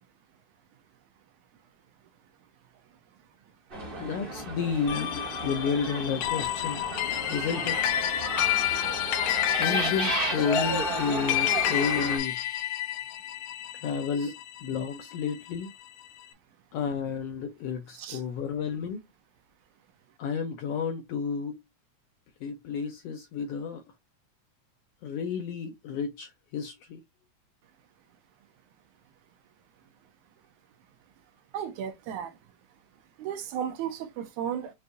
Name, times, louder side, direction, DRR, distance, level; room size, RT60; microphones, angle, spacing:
sound 1, 3.7-12.2, right 2 dB, 60° right, 0.5 m, -33 dB
voice 1, 4.0-6.8 7.3-7.8 9.6-12.4 13.7-15.7 16.7-19.0 20.2-21.5 22.4-23.8 25.0-27.0, left 6 dB, 75° left, 1.5 m, -31 dB
sound 2, 4.9-15.5, left 13 dB, 90° left, 2.2 m, -30 dB
voice 2, 31.5-32.3 33.2-34.7, right 9 dB, 90° right, 2.2 m, -34 dB
6.6 x 2.6 x 2.6 m
omnidirectional pair, 3.4 m